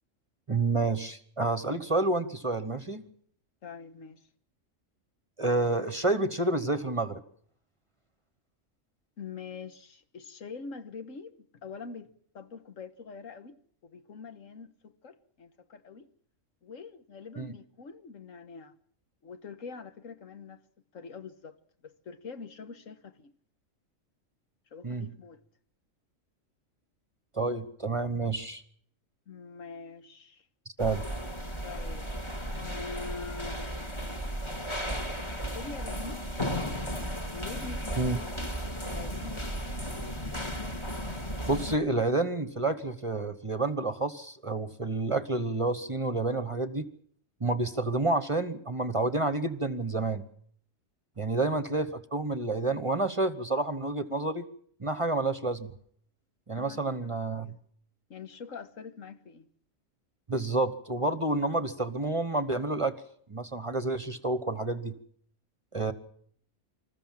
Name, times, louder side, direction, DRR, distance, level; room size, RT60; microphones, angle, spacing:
voice 1, 0.5-3.1 5.4-7.2 17.4-17.5 24.8-25.1 27.3-28.6 30.8-31.0 38.0-38.2 41.5-46.9 47.4-50.2 51.2-54.4 54.8-55.7 56.5-57.5 60.3-63.0 63.3-65.0 65.7-65.9, right 2 dB, 25° right, 1.1 m, -29 dB
voice 2, 3.6-4.3 9.2-16.1 16.6-18.7 19.2-20.6 20.9-21.6 21.8-23.3 24.7-25.4 29.3-30.5 31.6-32.1 32.5-34.1 35.4-36.2 37.3-38.6 38.9-39.6 56.5-57.1 57.4-57.6 58.1-59.5 65.9-66.0, left 5 dB, 75° left, 1.6 m, -44 dB
sound 1, 30.8-41.8, equal, 20° left, 2.2 m, -35 dB
26.0 x 14.5 x 7.4 m
omnidirectional pair, 1.4 m